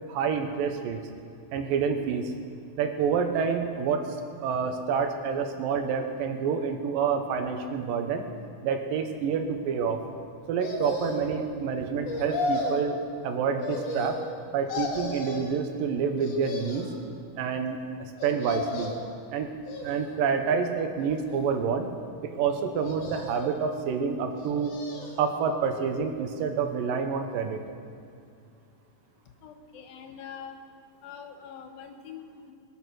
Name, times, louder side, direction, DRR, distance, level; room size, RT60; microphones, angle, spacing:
voice 1, 0.1-1.0 1.5-2.3 2.8-4.2 4.4-8.3 8.6-10.0 10.5-13.0 13.2-14.2 14.5-16.9 17.4-18.9 19.3-19.5 19.8-21.9 22.2-24.7 25.2-27.6, right 6 dB, 80° right, 6 dB, 2.7 m, -28 dB
sound 1, 10.6-11.4 12.1-12.9 13.6-14.4 14.7-15.6 16.2-17.0 18.2-19.1 19.6-20.3 21.0-21.8 22.8-23.6 24.3-25.3 25.6-25.7, left 2 dB, 55° left, 2.4 m, -34 dB
voice 2, 29.4-30.6 31.0-32.5, left 7 dB, 85° left, 5 dB, 2.9 m, -44 dB
21.5 x 8.7 x 6.3 m, 2.3 s
omnidirectional pair, 4.1 m